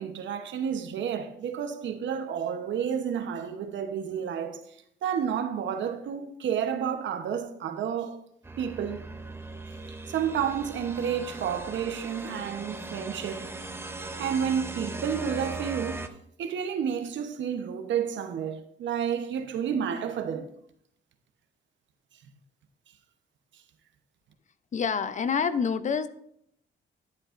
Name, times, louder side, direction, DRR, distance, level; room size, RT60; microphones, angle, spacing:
voice 1, 0.0-4.6 5.0-8.2 8.6-9.1 9.9-13.4 14.2-16.0 16.4-20.5, right 8 dB, 70° right, 1.0 m, -30 dB
sound 1, 8.4-16.1, right 3 dB, 10° right, 0.7 m, -39 dB
voice 2, 24.7-26.1, left 6 dB, 40° left, 0.6 m, -27 dB
11.5 x 7.7 x 2.5 m
cardioid pair, 90°, 20 cm